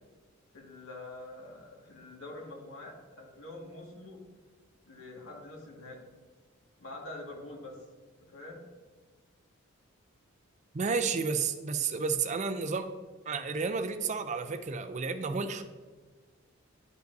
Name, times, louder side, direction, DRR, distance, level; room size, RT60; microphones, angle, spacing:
voice 1, 0.5-4.2 4.8-6.0 6.8-7.8 8.3-8.6, left 2 dB, 75° left, -2 dB, 1.9 m, -45 dB
voice 2, 10.7-12.9 13.3-15.6, right 5 dB, 35° right, 9 dB, 0.4 m, -31 dB
10.5 x 5.4 x 2.6 m, 1.4 s
head